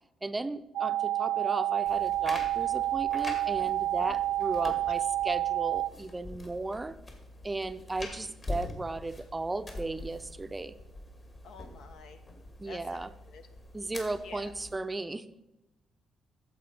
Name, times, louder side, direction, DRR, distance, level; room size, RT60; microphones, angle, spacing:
voice 1, 0.2-7.0 7.4-10.7 12.6-13.1 13.7-15.3, right 2 dB, 20° right, 11 dB, 0.5 m, -35 dB
sound 1, 0.7-5.9, right 14 dB, 90° right, 0.3 m, -29 dB
sound 2, 1.9-14.7, left 2 dB, 35° left, 2.3 m, -44 dB
voice 2, 11.4-12.2 12.6-13.5 14.2-14.5, left 5 dB, 75° left, 8 dB, 1.0 m, -48 dB
11.0 x 7.4 x 5.1 m, 0.93 s
cardioid pair, 90°, 0 cm